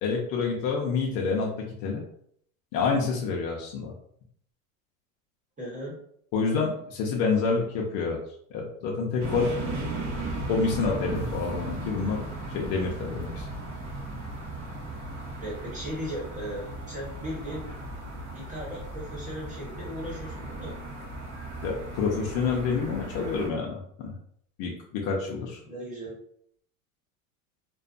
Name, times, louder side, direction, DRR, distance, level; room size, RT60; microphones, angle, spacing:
voice 1, 0.0-1.5 1.8-2.0 2.7-3.9 6.3-8.2 8.5-9.5 10.5-12.2 12.5-13.5 21.6-24.1 24.6-25.6, left 4 dB, 50° left, -2 dB, 0.6 m, -28 dB
voice 2, 5.6-6.0 15.4-17.6 18.3-20.8 25.6-26.1, equal, 15° right, -5 dB, 1.1 m, -37 dB
sound 1, 9.2-23.5, right 2 dB, 35° right, 0.8 m, -36 dB
2.5 x 2.2 x 2.4 m, 0.67 s
supercardioid pair, 115°, 44 cm